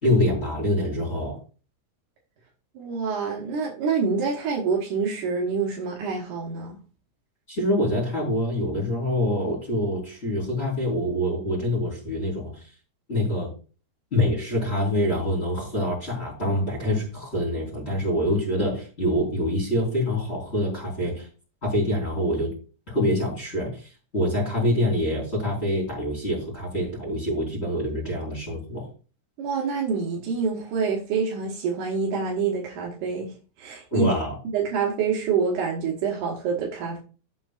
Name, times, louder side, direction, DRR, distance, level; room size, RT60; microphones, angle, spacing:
voice 1, 0.0-1.4 7.5-12.6 13.1-13.5 14.1-21.3 21.6-22.5 22.9-28.9 33.9-34.3, left 1 dB, 15° left, -5 dB, 4.2 m, -25 dB
voice 2, 2.8-6.8 29.4-33.3 33.6-34.1 34.5-37.0, right 5 dB, 80° right, -2 dB, 1.8 m, -26 dB
12.5 x 7.6 x 2.5 m, 0.36 s
omnidirectional pair, 5.8 m